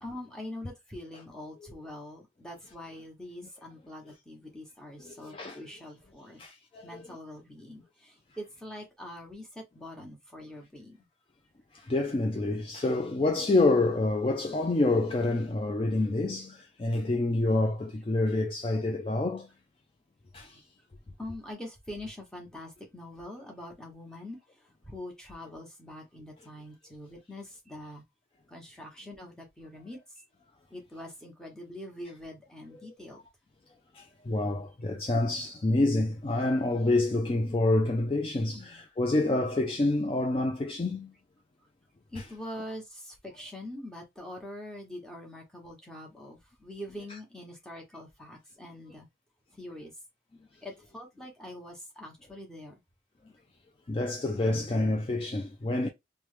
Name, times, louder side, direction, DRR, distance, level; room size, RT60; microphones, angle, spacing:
voice 1, 0.0-6.4 6.8-11.0 21.2-28.0 28.5-30.3 30.7-33.2 38.5-38.8 42.1-49.1 49.6-49.9 50.6-52.7, left 1 dB, 5° left, 0.9 m, -44 dB
voice 2, 5.0-5.6 6.4-7.0 11.7-19.5 20.3-20.6 33.9-41.1 53.9-55.9, left 2 dB, 30° left, 0.3 m, -27 dB
3.1 x 2.1 x 3.1 m
head